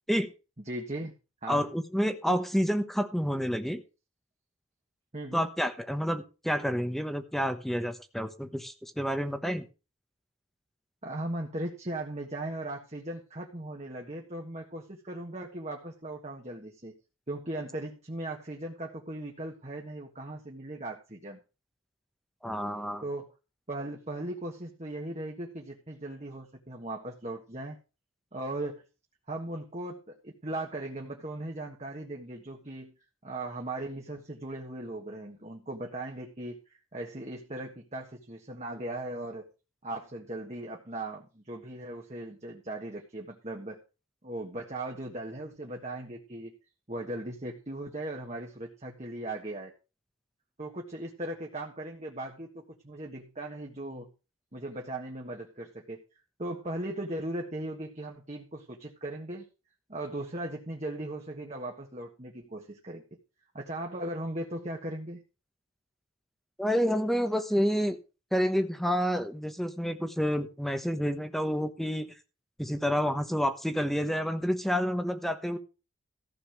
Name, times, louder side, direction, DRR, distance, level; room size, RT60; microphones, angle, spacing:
voice 1, 0.6-1.1 1.4-1.6 5.1-5.5 11.0-16.9 17.3-21.4 23.0-23.3 23.7-27.8 28.3-28.8 29.3-32.9 33.2-36.6 36.9-39.5 39.8-43.8 44.2-46.5 46.9-49.7 50.6-54.1 54.5-56.0 56.4-59.5 59.9-63.0 63.5-65.2, right 1 dB, 30° right, 0 dB, 1.5 m, -38 dB
voice 2, 1.5-3.8 5.3-9.7 22.4-23.0 66.6-68.0 68.3-72.1 72.6-75.6, equal, ahead, 9 dB, 1.0 m, -29 dB
14.5 x 5.4 x 6.6 m, 0.32 s
head